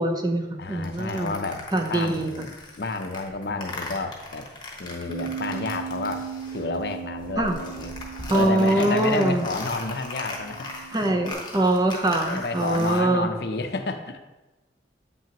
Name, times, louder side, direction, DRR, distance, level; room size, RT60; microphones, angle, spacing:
voice 1, 0.0-1.3 1.7-2.5 7.4-7.6 8.3-9.5 10.9-13.3, right 1 dB, 25° right, 3 dB, 0.7 m, -23 dB
voice 2, 0.6-2.5 2.8-4.5 4.8-7.9 8.3-11.5 12.2-14.2, left 3 dB, 65° left, 7 dB, 0.6 m, -30 dB
sound 1, 0.8-6.9 7.1-13.0, left 2 dB, 25° left, 1.0 m, -39 dB
Bass guitar, 5.1-11.3, right 7 dB, 55° right, 1.2 m, -38 dB
8.0 x 5.8 x 2.9 m, 1.1 s
head